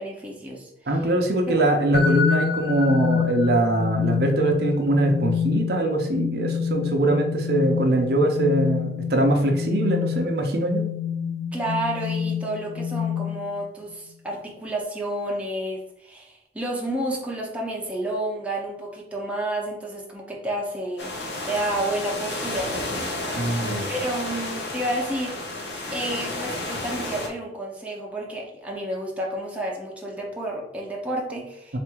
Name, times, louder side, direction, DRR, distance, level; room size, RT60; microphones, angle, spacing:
voice 1, 0.0-0.7 11.5-21.2 21.5-25.6 25.9-31.8, right 1 dB, 10° right, -2 dB, 0.7 m, -30 dB
voice 2, 0.9-10.8 23.3-23.9 31.7-31.8, right 1 dB, 60° right, 3 dB, 0.7 m, -22 dB
sound 1, 1.9-13.7, left 7 dB, 55° left, 0.4 m, -27 dB
sound 2, 21.0-27.3, left 2 dB, 75° left, 0.8 m, -31 dB
3.5 x 2.5 x 4.5 m, 0.78 s
head